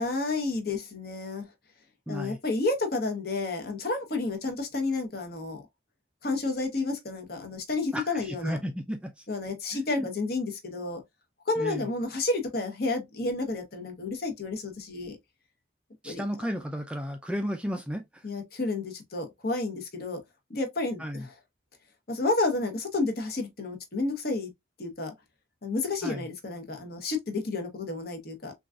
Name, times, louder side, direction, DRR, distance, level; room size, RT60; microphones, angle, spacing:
voice 1, 0.0-1.5 2.1-5.6 6.2-8.6 9.3-11.0 11.5-15.2 16.0-16.2 18.2-20.2 20.5-21.3 22.1-24.5 24.8-25.1 25.6-28.5, left 3 dB, 55° left, 0.9 m, -31 dB
voice 2, 2.1-2.4 7.9-9.2 9.7-10.1 11.6-11.9 16.0-18.2 21.0-21.3 26.0-26.2, equal, 5° right, 0.3 m, -33 dB
3.8 x 2.4 x 2.3 m
head